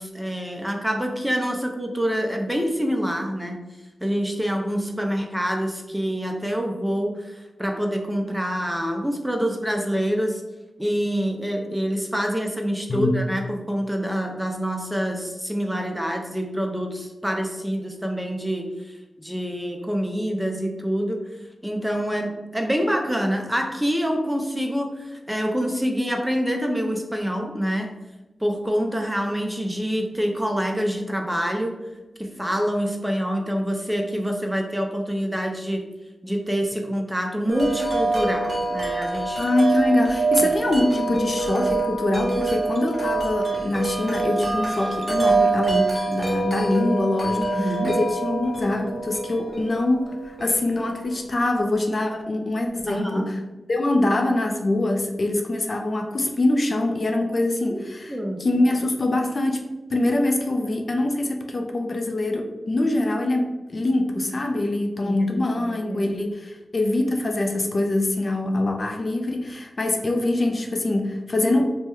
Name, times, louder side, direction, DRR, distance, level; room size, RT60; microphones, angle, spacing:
voice 1, 0.0-3.6 4.0-10.4 10.8-21.2 21.6-27.9 28.4-31.7 32.2-35.8 36.2-39.4 40.4-40.5 47.4-47.9 52.9-53.3 57.7-57.8 58.1-58.5 65.0-66.1, equal, 5° right, 2 dB, 0.5 m, -26 dB
Wind chime, 37.5-51.4, right 3 dB, 35° right, 1.1 m, -25 dB
voice 2, 39.4-53.4 53.7-71.8, left 2 dB, 50° left, 3 dB, 0.4 m, -24 dB
2.9 x 2.1 x 3.4 m, 1.1 s
cardioid pair, 65°, 0 cm